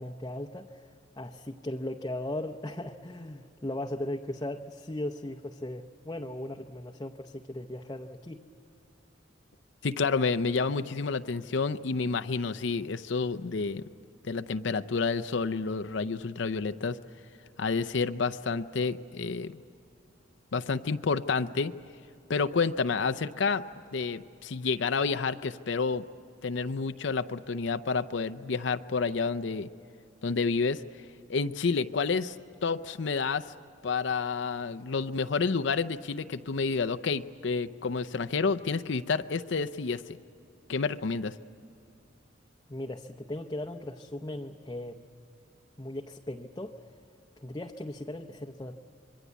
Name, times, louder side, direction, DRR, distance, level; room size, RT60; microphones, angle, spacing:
voice 1, 0.0-8.4 42.7-45.1 45.8-46.7 47.4-48.8, left 1 dB, 20° left, 1 dB, 0.8 m, -37 dB
voice 2, 9.8-13.8 14.2-17.0 17.6-19.6 20.5-21.7 22.3-23.7 23.9-26.0 26.4-29.7 30.2-30.8 31.3-32.4 32.6-33.4 33.8-40.0 40.7-41.3, left 4 dB, 70° left, 11 dB, 0.6 m, -29 dB
26.0 x 22.5 x 8.3 m, 2.6 s
head